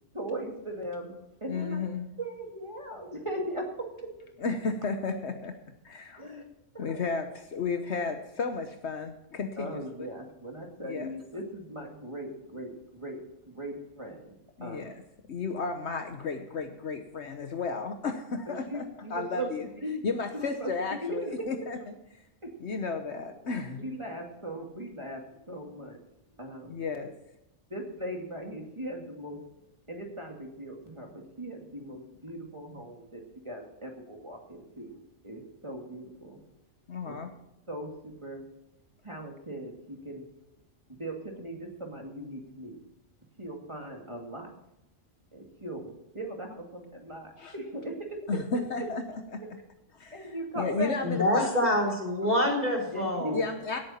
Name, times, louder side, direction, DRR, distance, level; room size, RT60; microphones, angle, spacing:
voice 1, 0.1-1.1 1.4-1.9 2.2-4.1 6.2-6.4 6.7-7.0 9.6-13.2 13.5-14.4 14.6-14.8 18.5-19.5 19.8-20.0 20.3-20.7 21.0-21.3 22.4-22.5 23.8-26.0 26.4-26.8 27.7-29.4 29.9-35.0 35.2-36.4 37.0-37.2 37.7-38.4 39.0-40.3 40.9-42.8 43.4-44.5 45.3-48.2 49.4-49.5 50.1-51.0 52.9-53.4, right 1 dB, 25° right, 1 dB, 2.4 m, -39 dB
voice 2, 1.5-2.1 4.4-5.6 5.8-6.2 6.8-10.1 10.8-11.1 14.6-15.0 15.3-19.7 20.0-21.9 22.6-23.9 26.7-27.1 36.9-37.3 47.4-47.5 48.3-49.4 49.9-51.7 53.3-53.8, left 4 dB, 65° left, 6 dB, 1.3 m, -33 dB
voice 3, 51.0-53.4, left 1 dB, 35° left, 1 dB, 3.9 m, -26 dB
17.0 x 8.8 x 4.3 m, 0.87 s
omnidirectional pair, 1.3 m